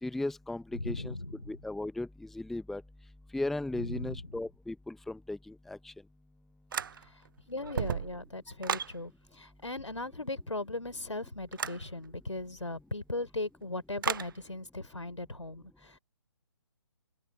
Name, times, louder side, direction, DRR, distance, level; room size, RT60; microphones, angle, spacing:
voice 1, 0.0-1.1 1.5-2.8 3.3-5.9, left 2 dB, ahead, 1.1 m, -36 dB
voice 2, 0.8-1.4 3.8-4.2 7.5-16.0, left 2 dB, 80° left, 4.1 m, -38 dB
sound 1, 6.7-7.3 7.6-9.0 11.5-11.8 14.0-14.3, right 7 dB, 45° right, 0.9 m, -34 dB
figure-of-eight pair, 140°, 15 cm